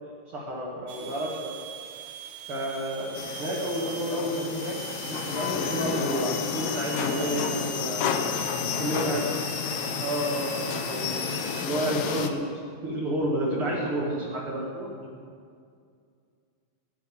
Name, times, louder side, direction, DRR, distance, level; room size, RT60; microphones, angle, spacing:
voice 1, 0.0-1.5 2.5-4.8 5.0-8.3 8.8-9.2 10.0-14.1 14.5-14.9, right 1 dB, 45° right, -4 dB, 2.4 m, -31 dB
sound 1, 0.9-11.7, right 8 dB, 70° right, 1.7 m, -42 dB
sound 2, 3.2-12.3, left 7 dB, 75° left, 1.4 m, -31 dB
voice 2, 8.6-9.0 13.4-14.5 14.8-15.2, left 1 dB, 10° left, -5 dB, 2.5 m, -41 dB
15.5 x 7.3 x 9.5 m, 2.3 s
omnidirectional pair, 3.8 m